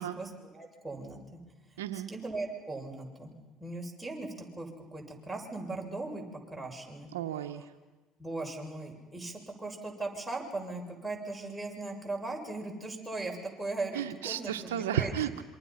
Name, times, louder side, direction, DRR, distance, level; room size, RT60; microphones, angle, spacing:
voice 1, 0.0-1.4 1.9-3.3 3.6-7.1 8.2-15.1, right 2 dB, 5° right, -1 dB, 7.0 m, -39 dB
voice 2, 1.8-2.1 7.1-7.7 13.9-15.4, right 10 dB, 90° right, 5 dB, 1.1 m, -33 dB
27.5 x 25.0 x 5.8 m, 1.2 s
hypercardioid pair, 70°, 0 cm